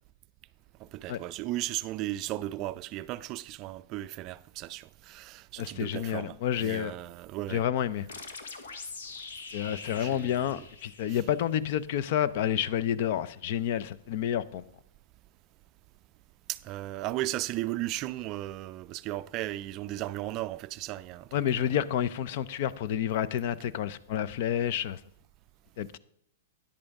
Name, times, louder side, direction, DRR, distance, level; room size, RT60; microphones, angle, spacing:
voice 1, 0.8-7.6 9.7-10.5 11.1-11.2 16.5-21.3, right 15 dB, 35° right, 0.3 m, -36 dB
voice 2, 5.6-6.9 7.5-8.1 9.5-14.7 21.3-25.0 25.8-26.0, left 10 dB, 55° left, 0.5 m, -29 dB
sound 1, 8.1-11.6, left 4 dB, 85° left, 1.3 m, -43 dB
10.0 x 8.6 x 3.5 m
hypercardioid pair, 135°, 0 cm